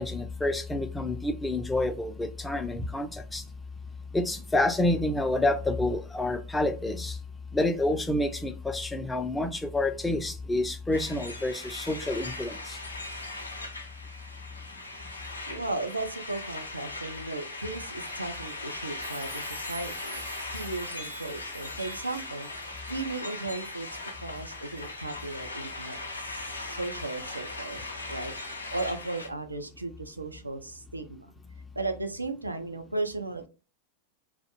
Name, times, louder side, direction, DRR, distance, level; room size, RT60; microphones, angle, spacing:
voice 1, 0.0-3.4 4.1-7.2 7.5-12.8, left 2 dB, 10° left, 7 dB, 0.3 m, -28 dB
sound 1, 10.9-29.3, left 2 dB, 80° left, 0.4 m, -39 dB
voice 2, 15.5-20.2 20.5-23.9 24.2-28.3 28.7-31.3 31.8-33.5, right 2 dB, 80° right, 6 dB, 0.3 m, -36 dB
sound 2, 19.0-25.9 26.3-26.4 27.7-27.8, right 3 dB, 60° right, 0.9 m, -51 dB
2.3 x 2.0 x 2.8 m, 0.33 s
figure-of-eight pair, 90°, 0 cm